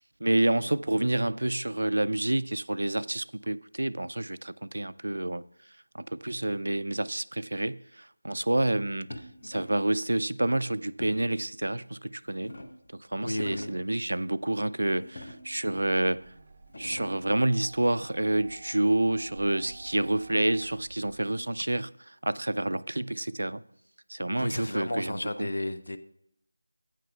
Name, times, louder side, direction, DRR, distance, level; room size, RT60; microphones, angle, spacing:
voice 1, 0.2-5.4 5.9-9.1 9.4-12.6 13.0-16.2 16.8-23.6 24.1-25.5, right 1 dB, 80° right, 0.4 m, -28 dB
sound 1, 9.1-9.9 11.0-11.4 12.1-12.9 13.3-13.9 15.0-15.7 16.3-16.4 16.6-17.4 18.7-19.9, left 1 dB, 45° left, 0.9 m, -45 dB
voice 2, 13.2-13.7 24.4-26.0, left 1 dB, 75° left, 0.7 m, -32 dB
sound 2, 15.7-21.1, right 4 dB, 20° right, 0.5 m, -51 dB
14.5 x 9.1 x 2.4 m
figure-of-eight pair, 180°, 0 cm